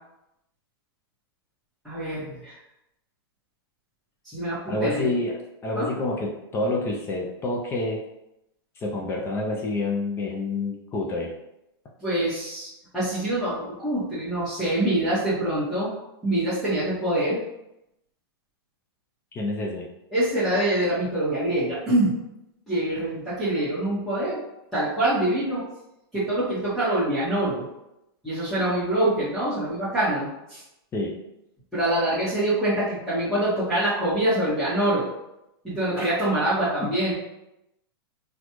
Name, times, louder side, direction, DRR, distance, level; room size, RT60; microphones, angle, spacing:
voice 1, 1.8-2.5 4.3-5.1 5.7-5.9 12.0-15.9 16.2-17.4 20.1-22.1 22.7-24.4 24.7-25.6 26.1-27.7 28.2-30.6 31.7-35.1 35.6-37.1, right 1 dB, ahead, -13 dB, 1.3 m, -25 dB
voice 2, 4.7-8.0 8.8-11.3 19.3-19.9 30.9-31.2 36.8-36.9, left 2 dB, 20° left, -1 dB, 0.5 m, -28 dB
4.1 x 2.4 x 3.0 m, 0.87 s
hypercardioid pair, 140°, 13 cm